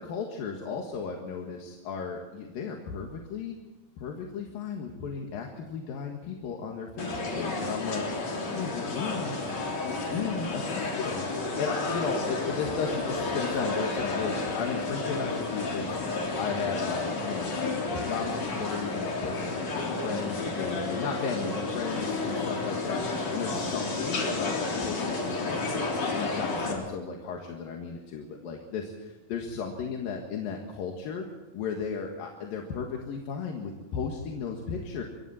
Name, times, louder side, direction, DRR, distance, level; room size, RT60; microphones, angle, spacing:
voice 1, 0.0-3.6 4.0-9.4 9.8-11.2 11.6-16.0 16.4-31.3 31.5-35.0, left 6 dB, 80° left, 2 dB, 3.4 m, -35 dB
sound 1, 7.0-26.7, left 3 dB, 50° left, 4.6 m, -31 dB
27.5 x 22.5 x 4.3 m, 1.2 s
omnidirectional pair, 4.0 m